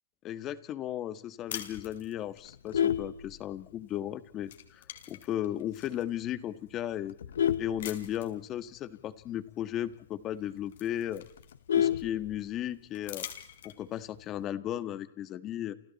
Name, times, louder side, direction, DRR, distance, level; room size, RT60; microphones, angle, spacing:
voice 1, 0.2-7.1 7.6-11.2 11.7-13.3 13.6-15.7, left 11 dB, 25° left, 13 dB, 1.6 m, -35 dB
sound 1, 1.5-2.5 3.9-4.1 4.4-6.0 6.7-6.8 7.8-8.4 9.8-9.9 10.3-11.9 12.9-14.0, left 11 dB, 70° left, 4.5 m, -44 dB
Vehicle horn car horn honking, 2.5-3.9 4.4-4.7 5.0-5.1 5.5-5.6 5.9-6.2 6.8-8.6 9.0-9.1 9.4-9.5 9.9-10.0 10.3-10.4 10.7-12.7 13.9-14.4, left 9 dB, 85° left, 1.2 m, -31 dB
29.5 x 29.0 x 4.2 m, 0.63 s
hypercardioid pair, 150°, 0 cm